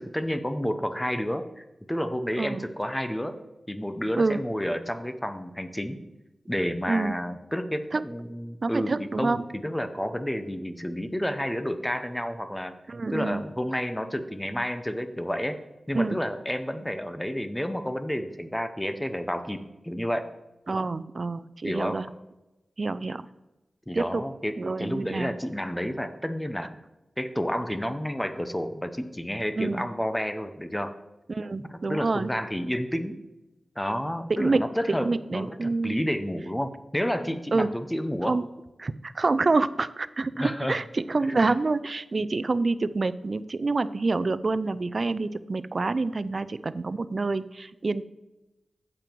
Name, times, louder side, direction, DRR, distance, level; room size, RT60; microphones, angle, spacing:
voice 1, 0.0-3.4 3.7-6.0 6.5-12.7 13.1-15.6 15.9-20.3 21.6-22.0 23.9-26.7 27.2-30.9 31.7-33.2 33.8-38.4 40.3-40.8 41.4-41.5, equal, 10° left, 10 dB, 0.8 m, -30 dB
voice 2, 8.6-9.4 12.9-13.4 15.9-16.2 20.7-22.1 22.8-23.2 23.9-24.2 24.6-25.3 29.6-29.8 31.3-32.3 34.3-36.0 37.5-37.7 38.3-38.5 38.8-48.0, right 3 dB, 50° right, 15 dB, 0.4 m, -27 dB
8.9 x 7.5 x 4.6 m, 1.0 s
wide cardioid pair, 80°, 0 cm